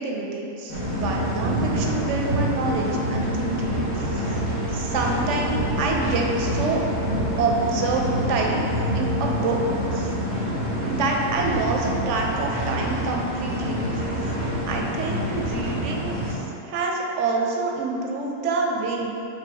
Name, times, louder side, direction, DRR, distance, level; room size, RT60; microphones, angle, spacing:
voice 1, 0.0-4.3 4.7-6.9 7.4-8.6 8.9-10.1 10.8-13.9 14.7-19.1, right 3 dB, 70° right, 0 dB, 0.8 m, -27 dB
sound 1, 0.7-16.3, equal, 85° left, 1.6 m, -26 dB
5.1 x 3.0 x 3.4 m, 2.9 s
omnidirectional pair, 1.4 m